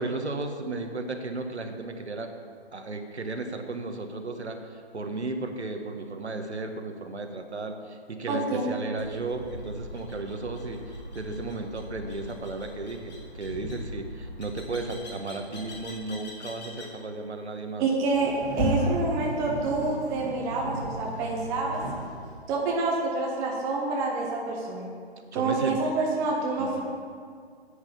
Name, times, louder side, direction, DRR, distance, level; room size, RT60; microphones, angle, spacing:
voice 1, 0.0-2.3 2.7-10.8 11.1-17.8 25.3-25.8 26.6-26.8, right 3 dB, 85° right, 5 dB, 1.6 m, -34 dB
voice 2, 8.3-8.7 17.8-21.8 22.5-24.9 25.3-26.8, right 3 dB, 10° right, -2 dB, 0.8 m, -27 dB
sound 1, 9.0-17.0, left 1 dB, 40° left, 2.6 m, -42 dB
Sliding door, 18.1-22.6, equal, 10° left, 2.6 m, -33 dB
9.9 x 8.3 x 6.9 m, 2.2 s
hypercardioid pair, 155°, 32 cm